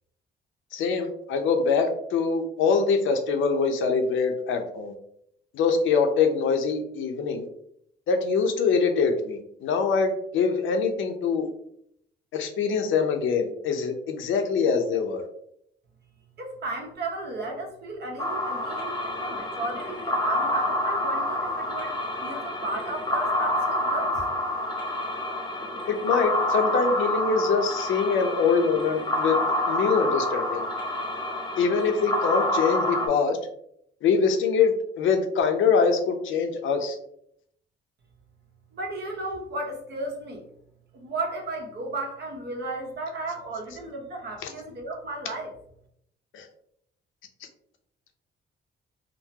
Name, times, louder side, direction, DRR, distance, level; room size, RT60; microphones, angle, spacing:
voice 1, 0.7-4.9 5.5-7.5 8.1-11.5 12.3-15.2 25.9-29.4 29.7-30.6 31.6-33.4 34.0-37.0 46.3-46.5, left 5 dB, 80° left, 5 dB, 0.6 m, -24 dB
voice 2, 16.4-24.2 38.7-40.4 40.9-45.5, right 2 dB, 55° right, 1 dB, 0.9 m, -34 dB
sound 1, 18.2-33.1, left 1 dB, 20° left, 0.6 m, -28 dB
3.7 x 2.0 x 2.8 m, 0.71 s
cardioid pair, 90°, 20 cm